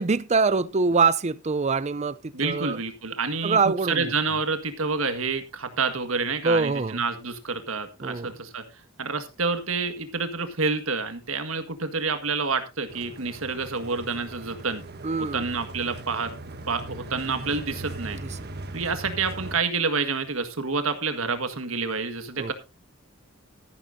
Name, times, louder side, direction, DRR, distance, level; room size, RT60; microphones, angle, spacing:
voice 1, 0.0-2.8 3.4-4.1 6.4-7.0 8.0-8.3 15.0-15.5 22.4-22.5, right 4 dB, 35° right, 0.6 m, -24 dB
voice 2, 2.3-3.6 3.9-8.6 9.0-14.8 15.2-16.3 16.7-18.2 18.7-22.5, right 4 dB, 70° right, 1.8 m, -28 dB
sound 1, 12.9-19.6, right 2 dB, 50° right, 1.3 m, -39 dB
13.5 x 11.5 x 2.7 m
head